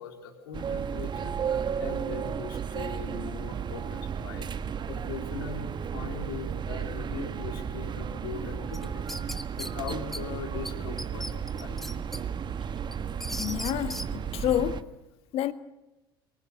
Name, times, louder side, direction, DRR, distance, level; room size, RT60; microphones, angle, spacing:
voice 1, 0.0-1.4 1.7-4.5 4.9-9.0 9.5-11.9, left 6 dB, 70° left, 4.1 m, -40 dB
sound 1, 0.5-14.8, right 7 dB, 35° right, 1.4 m, -34 dB
sound 2, 8.7-10.2 10.7-10.8 11.0-12.2 12.6-14.1, equal, ahead, 1.6 m, -37 dB
voice 2, 13.4-14.9 15.3-15.5, left 12 dB, 50° left, 1.6 m, -29 dB
24.0 x 19.5 x 8.4 m
figure-of-eight pair, 65°, 12 cm